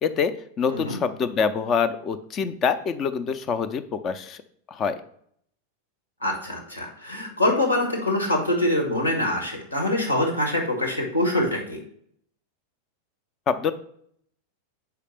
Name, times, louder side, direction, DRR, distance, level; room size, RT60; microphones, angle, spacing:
voice 1, 0.0-0.3 0.6-4.4 4.7-5.0 13.5-13.7, left 6 dB, 30° left, 12 dB, 0.5 m, -25 dB
voice 2, 6.2-11.8, left 1 dB, 85° left, 3 dB, 1.7 m, -24 dB
6.8 x 4.9 x 3.3 m, 0.66 s
figure-of-eight pair, 90°, 0 cm